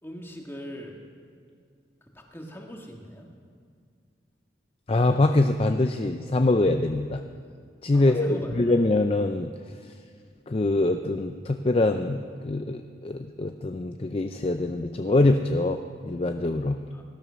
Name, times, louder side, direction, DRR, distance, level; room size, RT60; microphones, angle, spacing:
voice 1, 0.0-0.9 2.1-3.3 7.9-8.8 16.9-17.0, equal, 10° left, 1 dB, 1.7 m, -41 dB
voice 2, 4.9-7.2 7.8-9.5 10.5-16.8, left 2 dB, 30° left, 7 dB, 0.4 m, -24 dB
18.5 x 12.5 x 6.3 m, 2.1 s
head